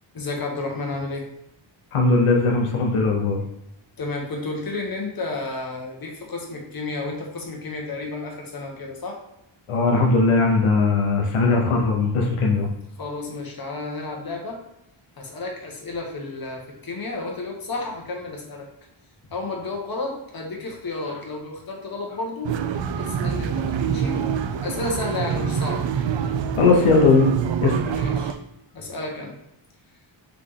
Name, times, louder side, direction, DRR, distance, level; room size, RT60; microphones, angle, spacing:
voice 1, 0.1-1.3 4.0-9.2 13.0-14.6 15.2-18.7 19.3-22.5 23.0-24.2 24.6-25.9 27.9-28.3 28.7-29.3, left 3 dB, 45° left, 0 dB, 1.1 m, -31 dB
voice 2, 1.9-3.4 9.7-12.7 26.6-27.3 27.6-27.8, left 3 dB, 80° left, 1 dB, 0.8 m, -19 dB
sound 1, 22.4-28.3, right 7 dB, 65° right, 0.5 m, -25 dB
3.8 x 3.4 x 3.6 m, 0.83 s
wide cardioid pair, 90°, 50 cm